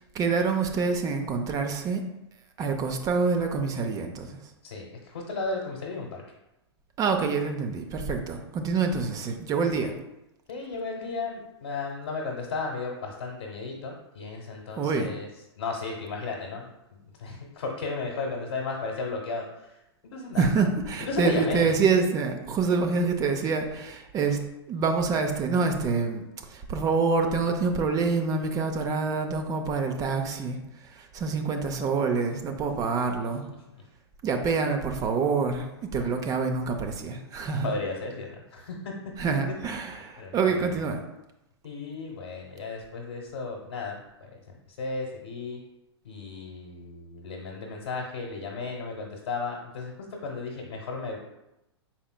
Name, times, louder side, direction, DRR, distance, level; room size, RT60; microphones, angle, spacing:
voice 1, 0.0-2.0 2.6-4.5 7.0-9.9 14.8-15.1 20.4-24.4 24.7-33.5 34.2-37.7 39.2-41.0, right 4 dB, 25° right, 5 dB, 0.5 m, -26 dB
voice 2, 4.6-6.2 10.5-15.3 15.6-19.8 20.1-20.5 21.0-21.8 33.7-33.8 36.0-36.1 37.6-38.9 39.7-39.8 40.2-40.8 41.6-44.4 44.7-45.6 46.0-51.2, left 3 dB, 65° left, -1 dB, 1.0 m, -34 dB
5.6 x 4.3 x 2.2 m, 0.93 s
figure-of-eight pair, 100°, 14 cm